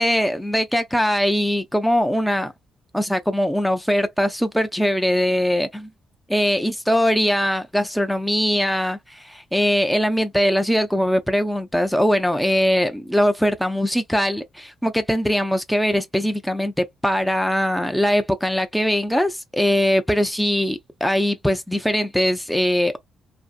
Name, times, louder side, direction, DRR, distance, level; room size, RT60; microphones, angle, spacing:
voice 1, 0.0-2.5 2.9-5.9 6.3-23.0, equal, ahead, 0.3 m, -21 dB
2.6 x 2.3 x 2.4 m
cardioid pair, 90°, 0 cm